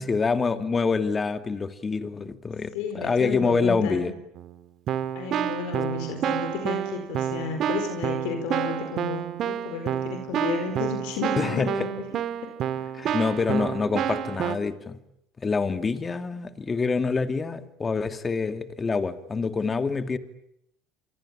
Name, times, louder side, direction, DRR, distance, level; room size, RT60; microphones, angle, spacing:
voice 1, 0.0-4.1 11.4-11.7 12.9-15.0 15.4-20.2, left 4 dB, 25° left, 9 dB, 2.6 m, -26 dB
voice 2, 2.7-4.1 5.1-12.2, left 6 dB, 75° left, 6 dB, 4.5 m, -32 dB
Keyboard (musical), 4.3-4.5 4.9-14.6, right 9 dB, 50° right, 2.0 m, -29 dB
27.5 x 23.0 x 9.1 m, 0.79 s
supercardioid pair, 90°, 0 cm